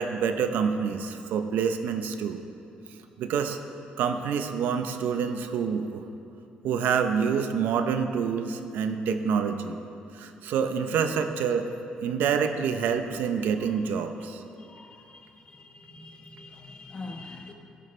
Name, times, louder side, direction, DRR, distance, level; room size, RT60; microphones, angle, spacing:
voice 1, 0.0-2.4 3.2-3.6 4.0-6.0 6.6-9.8 10.1-11.7 12.0-14.4, right 6 dB, 85° right, 7 dB, 0.7 m, -27 dB
voice 2, 14.6-17.5, left 3 dB, 35° left, 3 dB, 1.2 m, -44 dB
16.0 x 9.8 x 3.3 m, 2.7 s
cardioid pair, 125°, 3 cm